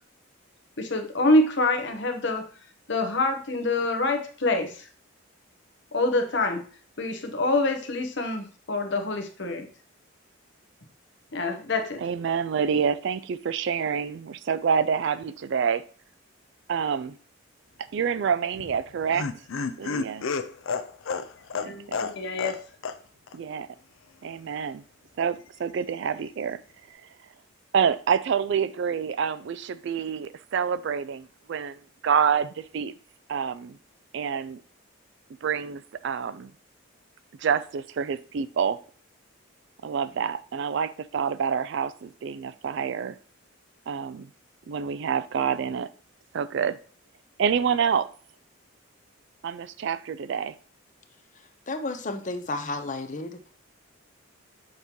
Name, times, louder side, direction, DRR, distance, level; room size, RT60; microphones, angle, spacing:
voice 1, 0.8-2.4 2.9-4.8 5.9-6.6 7.0-9.7 11.3-12.0 21.6-22.5, left 2 dB, 55° left, 5 dB, 1.0 m, -26 dB
voice 2, 12.0-15.8 16.7-17.2 17.8-19.3 19.8-20.3 21.6-22.0 23.3-23.7 24.2-24.8 25.2-26.6 27.7-32.9 33.3-33.8 34.1-34.6 35.4-36.5 37.4-38.8 39.8-43.2 43.9-44.3 44.7-45.9 46.3-46.8 47.4-48.1 49.4-50.5, right 7 dB, 60° right, 15 dB, 0.3 m, -27 dB
Laughter, 18.5-22.6 22.8-23.0 23.3-23.4, left 5 dB, 75° left, 0.5 m, -31 dB
voice 3, 51.7-53.4, left 2 dB, 35° left, 7 dB, 0.7 m, -32 dB
6.4 x 2.9 x 5.3 m, 0.41 s
head